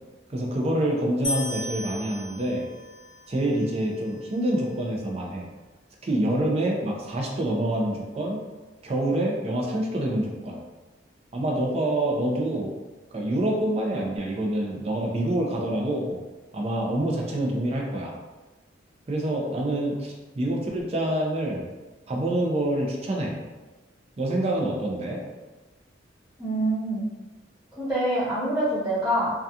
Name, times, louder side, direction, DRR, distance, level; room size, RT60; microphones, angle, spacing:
voice 1, 0.3-2.6 3.3-5.5 6.0-8.4 8.8-10.6 11.3-12.7 13.1-16.2 16.5-18.1 19.1-21.7 22.1-23.3 24.2-25.2, right 1 dB, 35° right, -1 dB, 0.4 m, -26 dB
sound 1, 1.2-4.5, left 2 dB, 40° left, 0.7 m, -36 dB
voice 2, 26.4-27.0 27.7-29.3, right 1 dB, 5° right, -15 dB, 1.1 m, -25 dB
2.3 x 2.3 x 2.7 m, 1.2 s
head